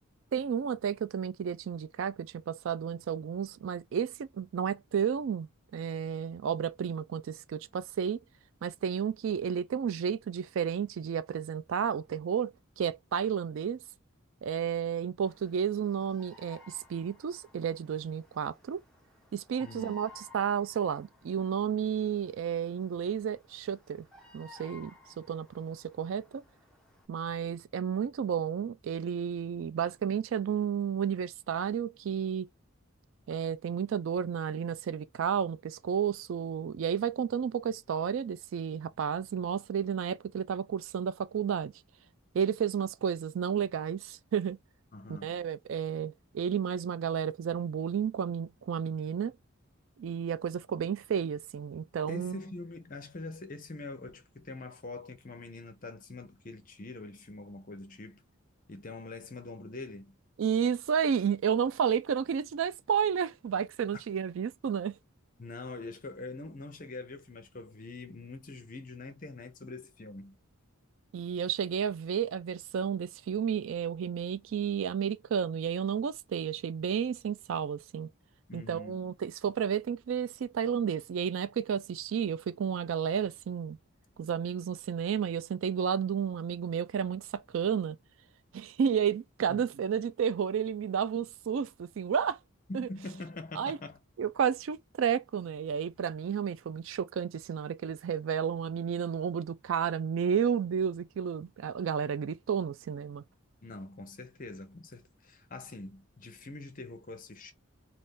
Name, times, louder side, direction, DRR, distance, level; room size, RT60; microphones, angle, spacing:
voice 1, 0.3-8.2 8.6-13.8 14.4-18.8 19.3-24.1 24.3-24.9 25.2-26.4 27.1-32.5 33.3-41.7 42.3-44.6 45.1-49.3 50.0-52.4 60.4-64.9 71.1-78.1 78.5-83.8 84.2-88.0 88.5-92.4 92.7-92.9 93.6-93.8 94.2-103.2, right 7 dB, 65° right, 0.3 m, -31 dB
Bird vocalization bird call bird song, 15.2-27.1, left 3 dB, 5° left, 0.7 m, -57 dB
voice 2, 19.6-19.9 44.9-45.3 52.1-58.2 58.7-60.2 65.4-70.4 78.5-79.0 89.5-89.7 92.7-94.0 103.6-107.5, left 2 dB, 40° left, 0.6 m, -44 dB
2.6 x 2.4 x 3.5 m
head